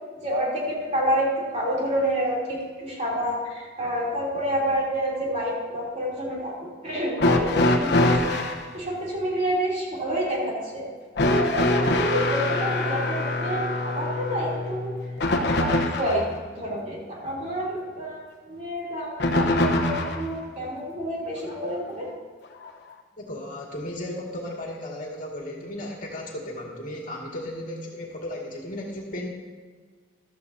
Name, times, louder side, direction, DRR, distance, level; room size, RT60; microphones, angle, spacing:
voice 1, 0.2-8.4 8.7-10.9 11.3-15.0 15.3-16.3 16.5-22.1, equal, 35° right, -4 dB, 3.1 m, -28 dB
sound 1, 7.2-8.6 11.2-16.3 19.2-20.3 21.5-21.6 22.6-22.7, left 2 dB, 60° left, 1.0 m, -24 dB
voice 2, 23.2-29.3, left 1 dB, 45° left, -2 dB, 2.2 m, -35 dB
14.5 x 13.0 x 2.8 m, 1.5 s
head